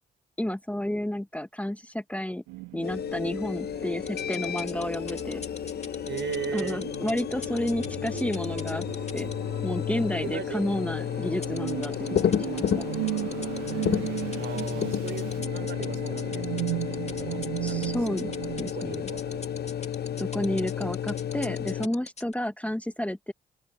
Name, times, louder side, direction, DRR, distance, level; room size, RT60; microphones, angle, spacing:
voice 1, 0.4-2.4 2.7-5.4 6.5-8.9 9.1-9.3 9.6-12.9 17.6-18.3 18.6-19.1 20.2-23.3, left 1 dB, 5° left, 1.8 m, -31 dB
sound 1, 2.5-18.7, right 23 dB, 75° right, 1.2 m, -37 dB
sound 2, 2.8-21.9, left 9 dB, 50° left, 1.1 m, -32 dB
sound 3, 4.1-9.3 11.4-22.3, left 4 dB, 30° left, 2.7 m, -40 dB
voice 2, 6.1-6.8 10.1-10.7 14.4-16.6 17.1-18.3 18.7-19.7, right 10 dB, 60° right, 5.1 m, -37 dB
open air
hypercardioid pair, 40°, 21 cm